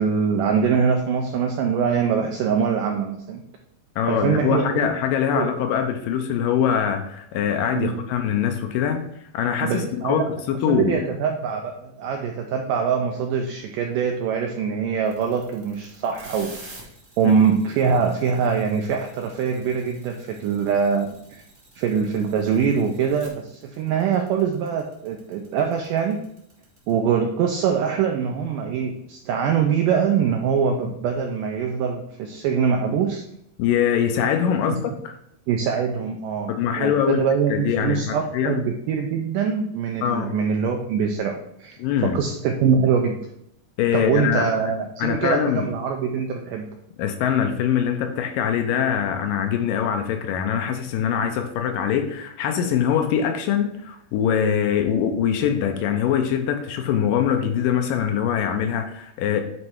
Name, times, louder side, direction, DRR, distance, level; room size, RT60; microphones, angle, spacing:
voice 1, 0.0-3.4 4.1-4.9 5.4-5.5 7.7-8.0 9.6-10.3 10.7-16.6 17.2-21.4 21.8-26.2 26.9-33.2 34.7-34.8 35.5-41.8 42.0-43.2 43.9-46.7, right 6 dB, 85° right, 3 dB, 1.9 m, -23 dB
voice 2, 4.0-9.0 9.3-11.0 17.2-17.3 33.6-35.2 36.5-38.6 40.0-40.4 41.8-42.2 43.8-44.5 45.0-45.7 47.0-59.4, left 8 dB, 80° left, 6 dB, 2.1 m, -23 dB
sound 1, 15.1-26.9, right 2 dB, 45° right, 0.9 m, -47 dB
9.4 x 3.2 x 4.5 m, 0.75 s
omnidirectional pair, 4.4 m